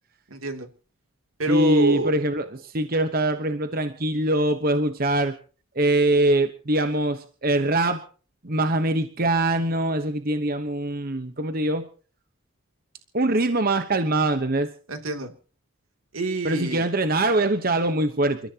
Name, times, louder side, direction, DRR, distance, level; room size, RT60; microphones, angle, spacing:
voice 1, 0.3-0.7 1.4-2.1 14.9-15.3 16.1-16.9, right 2 dB, 80° right, 6 dB, 2.9 m, -26 dB
voice 2, 1.5-5.4 5.7-8.0 8.4-11.9 13.1-14.7 16.4-18.4, right 1 dB, 45° right, 9 dB, 1.1 m, -23 dB
28.5 x 14.5 x 2.9 m, 0.40 s
head